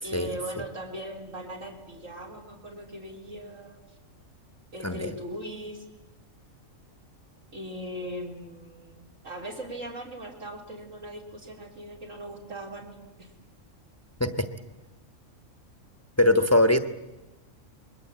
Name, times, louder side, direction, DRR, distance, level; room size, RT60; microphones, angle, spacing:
voice 1, 0.0-3.8 4.7-5.9 7.5-13.3, right 1 dB, 75° right, -2 dB, 3.8 m, -39 dB
voice 2, 16.2-16.8, left 1 dB, 10° left, 8 dB, 1.2 m, -21 dB
28.0 x 22.0 x 8.7 m, 1.1 s
omnidirectional pair, 1.4 m